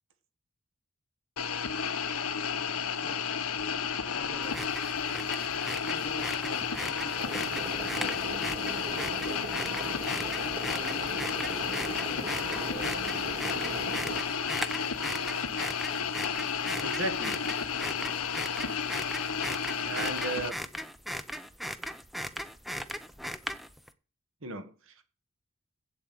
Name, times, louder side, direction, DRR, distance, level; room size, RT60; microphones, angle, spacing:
sound 1, 1.4-20.5, left 6 dB, 90° left, 1.2 m, -32 dB
voice 1, 2.9-4.8 5.2-8.5 8.7-9.8 10.6-14.2, left 1 dB, 25° left, 1.2 m, -49 dB
sound 2, 4.4-23.9, equal, ahead, 0.6 m, -39 dB
sound 3, 7.2-14.2, right 2 dB, 35° right, 2.1 m, -40 dB
voice 2, 16.8-17.5 19.8-20.6 24.4-25.0, right 3 dB, 60° right, 1.5 m, -36 dB
8.4 x 7.9 x 7.8 m
head